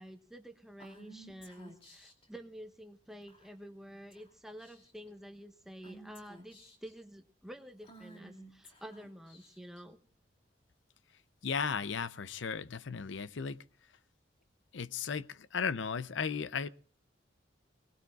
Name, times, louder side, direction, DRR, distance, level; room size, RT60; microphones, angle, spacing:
voice 1, 0.0-10.0, equal, ahead, 1.2 m, -49 dB
Female speech woman speaking / Whispering, 0.8-2.3 3.3-3.7 4.1-4.3 4.6-5.1 5.8-6.9 7.8-9.8, right 1 dB, 30° left, 2.7 m, -54 dB
voice 2, 11.4-13.6 14.7-16.7, left 6 dB, 80° left, 0.6 m, -35 dB
24.0 x 19.0 x 2.4 m
head